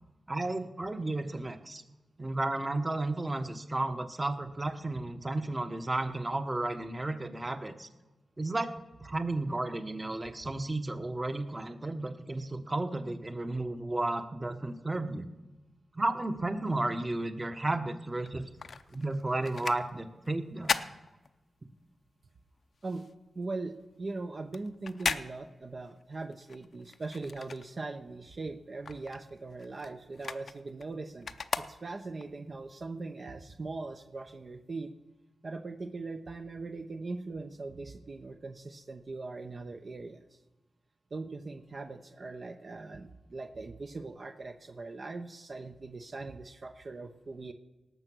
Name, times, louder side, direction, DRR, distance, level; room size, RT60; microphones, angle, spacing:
voice 1, 0.3-1.8 2.2-7.9 8.4-8.7 9.0-15.3 15.9-18.4 18.9-20.8, right 2 dB, 25° right, 9 dB, 1.2 m, -33 dB
sound 1, 18.2-21.9 22.2-28.2 28.5-32.3 32.8-32.9, left 5 dB, 65° left, 0.6 m, -38 dB
voice 2, 23.3-34.9 35.4-40.4 41.1-47.5, right 3 dB, 50° right, 5 dB, 0.9 m, -40 dB
18.0 x 6.8 x 6.2 m, 1.1 s
cardioid pair, 65°, 0 cm